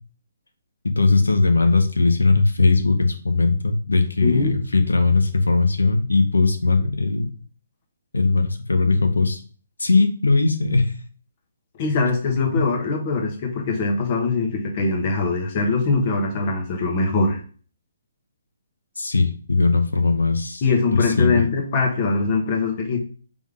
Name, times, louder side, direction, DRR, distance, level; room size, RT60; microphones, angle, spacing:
voice 1, 0.8-7.3 8.1-9.4 9.8-10.9 12.6-12.7 19.0-20.6 21.0-21.5, left 3 dB, 85° left, 6 dB, 0.7 m, -19 dB
voice 2, 4.2-4.6 11.8-17.4 20.6-23.0, left 3 dB, 40° left, 2 dB, 1.1 m, -22 dB
3.5 x 3.5 x 3.5 m, 0.40 s
figure-of-eight pair, 140°, 0 cm